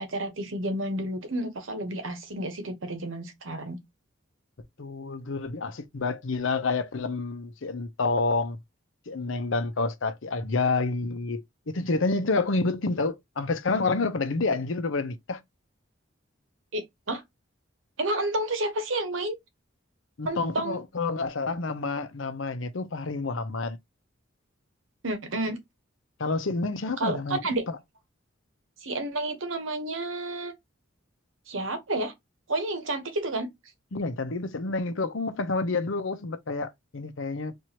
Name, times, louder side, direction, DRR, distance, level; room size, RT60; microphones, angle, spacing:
voice 1, 0.0-3.8 16.7-17.2 18.0-19.4 20.2-20.8 25.0-25.6 27.0-27.6 28.8-30.5 31.5-32.1 32.5-33.5, right 1 dB, 75° right, 1.1 m, -30 dB
voice 2, 4.8-8.6 9.1-15.4 20.2-23.8 26.2-27.8 33.9-37.6, left 3 dB, 70° left, 0.7 m, -29 dB
4.5 x 2.6 x 2.9 m
head